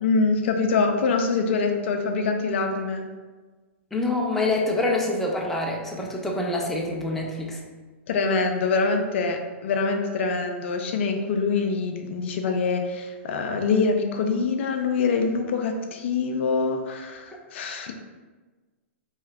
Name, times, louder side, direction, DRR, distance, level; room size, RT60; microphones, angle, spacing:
voice 1, 0.0-3.0 8.1-17.9, left 4 dB, 65° left, 4 dB, 0.4 m, -24 dB
voice 2, 3.9-7.6, left 2 dB, 5° left, -2 dB, 0.4 m, -26 dB
2.8 x 2.3 x 3.3 m, 1.3 s
hypercardioid pair, 125°, 7 cm